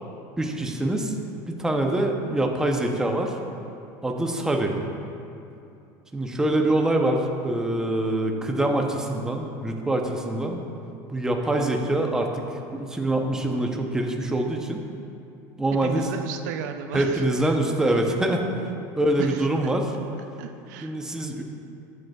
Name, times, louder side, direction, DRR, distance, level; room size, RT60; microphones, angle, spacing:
voice 1, 0.4-1.1 1.5-3.3 4.0-4.7 6.1-10.6 11.1-12.5 12.7-14.8 15.6-16.1 16.9-18.4 19.0-19.9 20.8-21.4, right 1 dB, 5° right, 2 dB, 0.7 m, -24 dB
voice 2, 15.8-17.6 17.9-18.0 19.2-19.7 20.4-20.9, right 8 dB, 85° right, 7 dB, 0.5 m, -35 dB
13.5 x 7.9 x 2.3 m, 2.7 s
supercardioid pair, 140°, 9 cm